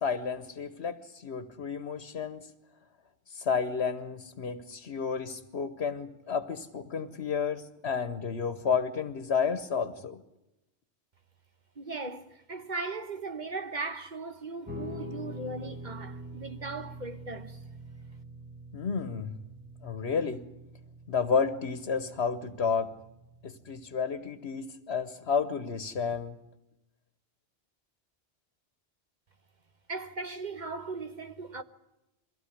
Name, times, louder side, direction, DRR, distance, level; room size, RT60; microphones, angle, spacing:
voice 1, 0.0-2.4 3.3-10.2 18.7-19.3 19.8-20.4 21.1-22.9 23.4-26.3, left 6 dB, 75° left, 1.4 m, -31 dB
voice 2, 11.8-17.6 29.9-31.6, right 3 dB, 45° right, 1.3 m, -38 dB
Guitar, 14.7-23.9, right 1 dB, 10° right, 2.2 m, -45 dB
23.0 x 16.5 x 9.9 m
omnidirectional pair, 1.1 m